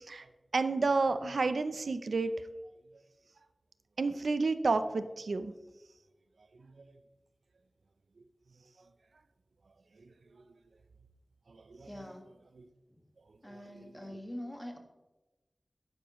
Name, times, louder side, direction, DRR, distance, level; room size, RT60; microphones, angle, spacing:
voice 1, 0.5-2.3 4.0-5.5 11.8-11.9, right 3 dB, 85° right, 11 dB, 0.5 m, -30 dB
voice 2, 11.8-12.3 13.4-14.8, left 1 dB, 15° left, 2 dB, 1.7 m, -44 dB
12.0 x 9.8 x 3.1 m, 1.1 s
wide cardioid pair, 65°, 0 cm